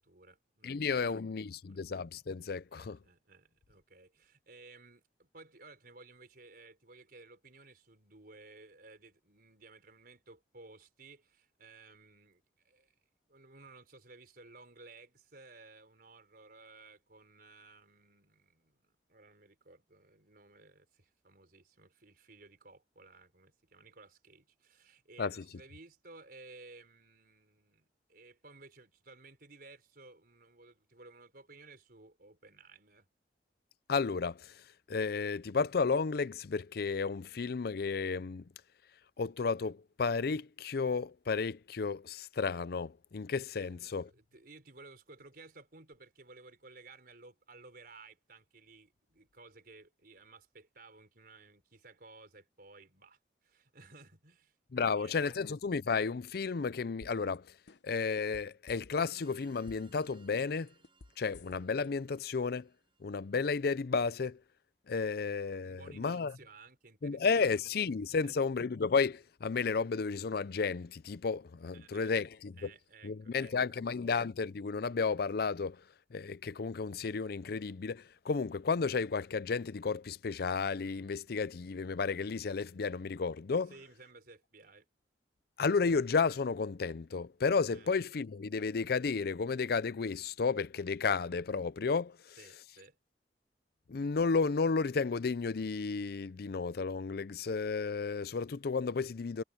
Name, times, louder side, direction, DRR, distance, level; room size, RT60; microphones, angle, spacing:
voice 1, 0.0-1.3 1.6-1.8 2.7-12.9 13.3-33.1 43.6-55.4 65.6-67.6 68.1-68.4 71.7-72.1 72.6-73.8 83.7-84.9 87.7-87.9 92.4-93.0, right 3 dB, 55° right, 4.9 m, -57 dB
voice 2, 0.6-3.0 25.2-25.4 33.9-38.4 39.2-44.1 54.7-57.5 57.8-60.7 61.2-62.7 63.0-64.4 64.9-66.3 67.0-72.7 73.0-75.8 76.1-83.7 85.6-92.4 93.9-99.4, left 5 dB, 60° left, 0.5 m, -32 dB
sound 1, 57.0-57.4 57.7-59.2 59.5-60.0 60.3-61.9 62.2-62.3, left 3 dB, 85° left, 0.9 m, -53 dB
sound 2, 59.0-63.6, right 3 dB, 30° right, 7.4 m, -65 dB
head